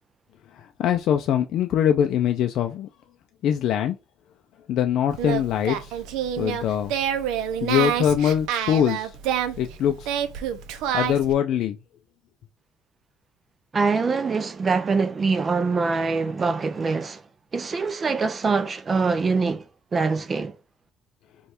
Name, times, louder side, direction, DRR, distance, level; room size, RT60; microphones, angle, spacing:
voice 1, 0.5-2.9 3.4-4.0 4.7-6.0 6.4-6.9 7.6-9.2 9.6-10.1 10.9-11.8, left 9 dB, 65° left, 0.4 m, -23 dB
Singing, 5.1-11.3, right 9 dB, 85° right, 0.5 m, -28 dB
voice 2, 13.7-17.2 17.5-19.7 19.9-20.6, right 4 dB, 30° right, 0.4 m, -24 dB
3.1 x 2.3 x 4.3 m
cardioid pair, 100°, 0 cm